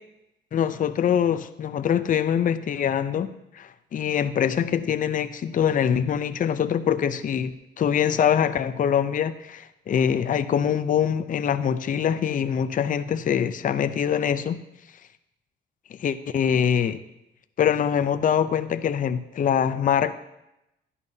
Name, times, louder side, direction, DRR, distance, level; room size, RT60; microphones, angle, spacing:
voice 1, 0.5-3.3 3.5-14.6 16.0-17.0 17.6-20.2, left 8 dB, 45° left, 11 dB, 0.5 m, -24 dB
11.0 x 10.5 x 2.8 m, 0.87 s
cardioid pair, 90°, 20 cm